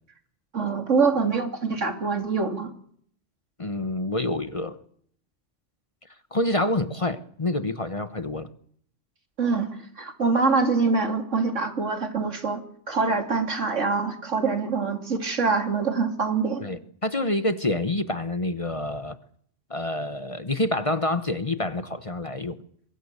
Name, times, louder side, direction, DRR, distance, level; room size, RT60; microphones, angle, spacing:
voice 1, 0.5-2.7 9.4-16.6, right 4 dB, 85° right, 3.1 m, -25 dB
voice 2, 3.6-4.8 6.3-8.5 16.6-19.2 19.7-22.6, left 1 dB, 30° left, 1.1 m, -27 dB
24.0 x 20.0 x 8.1 m
omnidirectional pair, 1.2 m